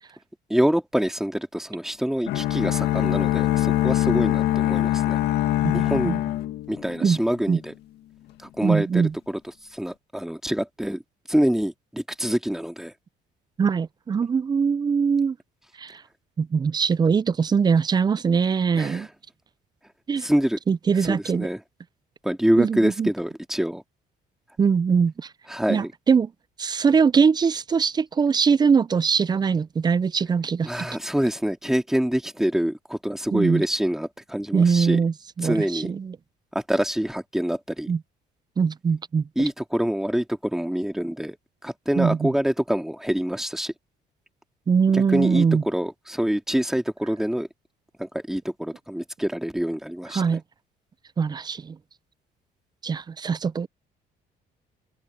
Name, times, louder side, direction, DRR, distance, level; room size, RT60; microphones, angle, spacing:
voice 1, 0.5-5.2 5.7-6.1 6.7-7.7 8.4-9.4 9.7-11.0 11.3-12.9 18.8-19.1 20.2-20.6 21.0-21.6 22.2-23.8 25.5-25.9 30.6-35.0 35.4-35.9 36.5-37.9 39.4-41.4 41.6-43.7 44.9-47.5 48.0-50.4, equal, 5° right, 2.7 m, -26 dB
sound 1, 2.3-7.2, left 14 dB, 80° left, 2.0 m, -23 dB
voice 2, 5.6-6.2 7.0-7.2 7.5-7.6 8.6-9.1 13.6-15.4 15.8-16.0 16.4-19.1 20.1-20.3 20.7-21.5 22.6-23.1 24.6-25.3 25.7-26.3 26.6-30.9 33.3-33.6 34.5-36.2 37.9-38.0 38.6-39.5 42.0-42.3 44.7-45.6 50.1-50.4 51.2-51.8 52.8-53.7, right 6 dB, 25° right, 0.4 m, -22 dB
cardioid pair, 110°, 17 cm